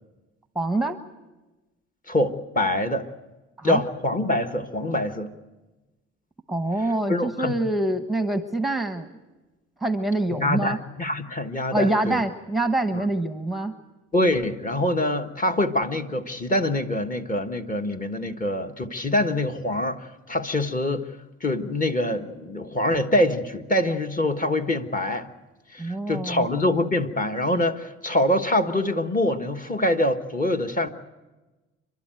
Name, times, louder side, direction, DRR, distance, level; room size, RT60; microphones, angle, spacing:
voice 1, 0.5-1.0 3.6-3.8 6.5-9.1 9.8-10.8 11.7-13.7 25.8-26.5, right 2 dB, ahead, 9 dB, 1.1 m, -25 dB
voice 2, 2.1-3.0 3.6-5.3 7.1-7.5 10.4-12.2 12.9-13.0 14.1-21.0 21.4-25.3 25.7-30.9, left 1 dB, 25° left, 5 dB, 1.5 m, -25 dB
28.0 x 12.5 x 9.1 m, 1.1 s
cardioid pair, 90°, 30 cm